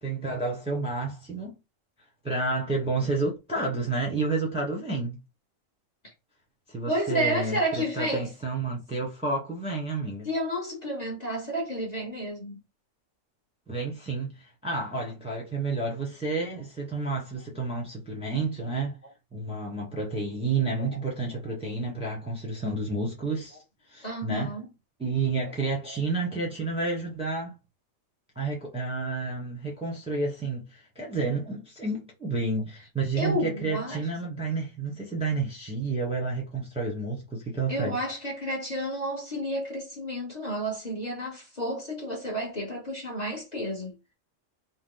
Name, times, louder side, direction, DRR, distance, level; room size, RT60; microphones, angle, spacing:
voice 1, 0.0-1.6 2.2-5.2 6.7-10.3 13.7-19.0 19.3-23.6 23.9-24.5 25.0-27.6 28.3-37.9, right 3 dB, 5° right, 1.0 m, -30 dB
voice 2, 6.9-8.3 10.2-12.6 20.8-20.9 24.0-24.7 25.4-25.5 25.9-26.0 33.1-34.0 37.7-43.9, equal, 35° left, 1.1 m, -31 dB
4.0 x 2.1 x 3.8 m
omnidirectional pair, 1.4 m